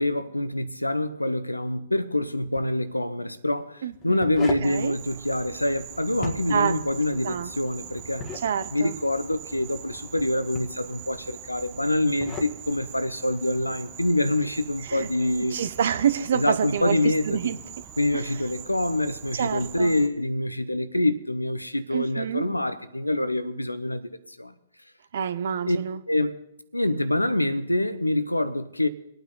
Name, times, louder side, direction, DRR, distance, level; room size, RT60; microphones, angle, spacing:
voice 1, 0.0-8.3 8.7-15.6 16.3-17.5 18.0-24.0 24.3-24.5 25.7-25.8 26.1-26.3 26.7-28.9, left 1 dB, 85° left, 0.8 m, -26 dB
sound 1, 2.4-2.7 3.9-4.7 6.1-6.7 8.0-8.5 10.2-10.8 11.9-12.6, left 3 dB, 25° left, 1.6 m, -36 dB
voice 2, 3.8-4.3 4.6-5.0 6.5-6.8 7.2-7.5 8.4-8.9 14.9-15.1 15.5-17.6 18.1-18.2 19.3-19.9 21.9-22.5 25.1-26.0, right 8 dB, 55° right, 0.9 m, -27 dB
Insect, 4.6-20.1, right 9 dB, 30° right, 1.2 m, -43 dB
24.5 x 9.0 x 3.9 m
figure-of-eight pair, 115°, 0 cm